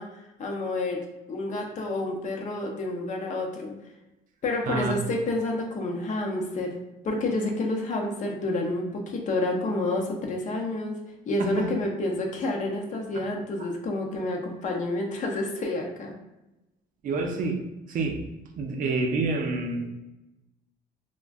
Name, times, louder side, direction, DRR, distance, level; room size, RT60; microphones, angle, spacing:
voice 1, 0.0-3.8 4.4-6.7 7.0-11.0 11.3-16.1, left 2 dB, 45° left, 1 dB, 0.6 m, -29 dB
voice 2, 17.0-17.6 17.9-18.3 18.6-19.9, right 3 dB, 55° right, 3 dB, 0.5 m, -27 dB
2.4 x 2.1 x 3.4 m, 0.98 s
cardioid pair, 110°, 17 cm